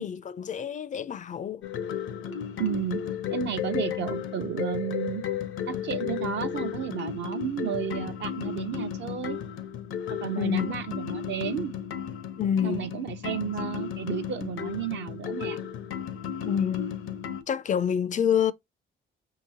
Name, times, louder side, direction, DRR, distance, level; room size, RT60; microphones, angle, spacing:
voice 1, 0.0-1.6 10.3-10.7 12.4-12.9 16.4-16.9 17.5-18.5, left 8 dB, 40° left, 0.4 m, -27 dB
sound 1, 1.6-17.4, left 8 dB, 80° left, 0.7 m, -34 dB
voice 2, 2.6-3.0 3.3-5.2 5.7-9.4 10.1-11.7 12.6-15.6, right 9 dB, 65° right, 0.7 m, -32 dB
5.5 x 2.9 x 2.6 m
cardioid pair, 90°, 20 cm